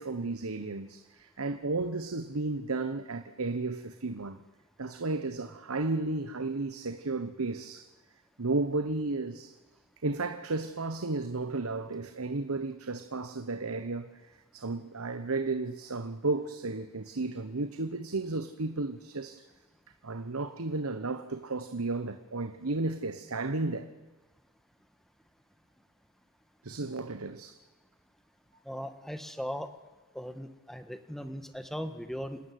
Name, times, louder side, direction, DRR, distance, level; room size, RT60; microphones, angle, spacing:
voice 1, 0.0-4.4 4.8-7.9 8.4-9.5 10.0-19.4 20.0-23.9 26.6-27.6, right 3 dB, 70° right, 1.1 m, -33 dB
voice 2, 28.6-29.7 30.1-32.4, equal, ahead, 1.4 m, -38 dB
28.5 x 13.0 x 9.5 m
head